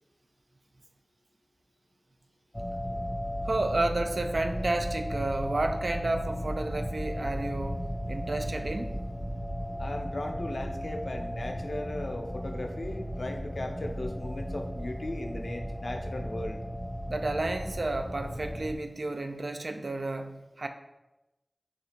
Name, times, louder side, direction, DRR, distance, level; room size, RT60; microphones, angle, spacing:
sound 1, 2.5-18.8, equal, 10° left, 0.4 m, -35 dB
voice 1, 3.4-7.8 8.1-9.0 17.1-20.7, right 2 dB, 75° right, 7 dB, 0.3 m, -31 dB
voice 2, 9.8-16.7, left 1 dB, 80° left, 4 dB, 0.4 m, -37 dB
6.4 x 2.4 x 2.8 m, 0.98 s
wide cardioid pair, 40°, 0 cm